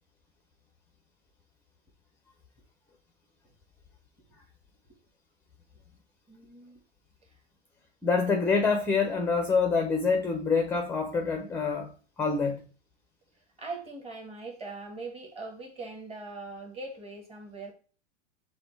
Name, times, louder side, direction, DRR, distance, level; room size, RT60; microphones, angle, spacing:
voice 1, 6.3-6.8 13.6-17.7, right 3 dB, 15° right, 1.3 m, -41 dB
voice 2, 8.0-11.9 12.2-12.6, left 4 dB, 5° left, 0.5 m, -26 dB
5.8 x 2.3 x 3.9 m
hypercardioid pair, 115°, 36 cm